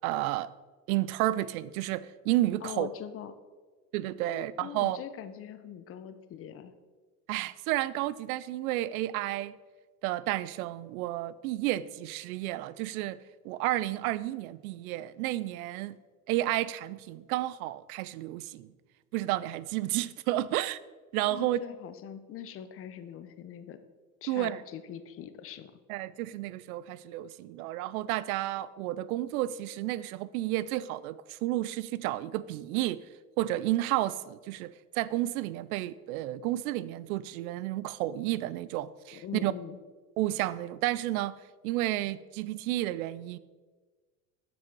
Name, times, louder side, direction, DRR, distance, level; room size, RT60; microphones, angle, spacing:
voice 1, 0.0-0.5 0.9-2.9 3.9-5.0 7.3-9.5 10.0-13.2 13.4-15.9 16.3-18.7 19.1-20.8 21.1-21.6 24.3-24.6 25.9-33.0 33.4-39.5 40.2-41.3 41.6-43.4, right 15 dB, 70° right, 18 dB, 0.5 m, -31 dB
voice 2, 2.6-3.3 4.3-6.7 21.3-23.8 24.2-25.7 39.1-39.8, left 9 dB, 30° left, 11 dB, 0.6 m, -42 dB
7.3 x 6.2 x 4.5 m, 1.4 s
hypercardioid pair, 100°, 45 cm